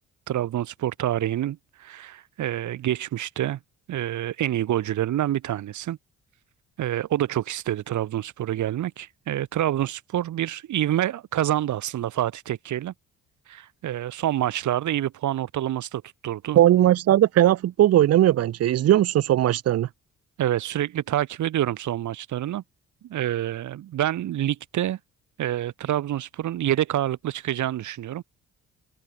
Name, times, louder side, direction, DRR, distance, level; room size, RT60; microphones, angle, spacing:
voice 1, 0.3-3.6 3.9-6.0 6.8-12.9 13.5-16.6 20.4-22.6 23.1-25.0 25.4-28.2, right 12 dB, 75° right, 3.6 m, -27 dB
voice 2, 16.6-19.9, right 12 dB, 55° right, 0.7 m, -18 dB
open air
cardioid pair, 90°, 30 cm